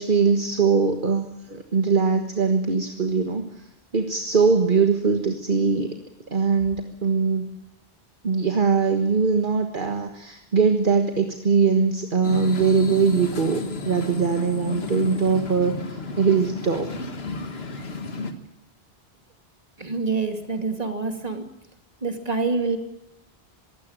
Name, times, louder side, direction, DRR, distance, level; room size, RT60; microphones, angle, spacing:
voice 1, 0.0-3.7 3.9-5.9 6.3-7.5 8.2-16.9, right 5 dB, 55° right, 5 dB, 1.7 m, -22 dB
sound 1, 12.2-18.3, left 3 dB, 75° left, 1.9 m, -32 dB
voice 2, 19.8-21.5 22.0-22.8, right 4 dB, 40° right, 5 dB, 2.6 m, -26 dB
22.5 x 16.5 x 8.9 m, 0.88 s
omnidirectional pair, 1.0 m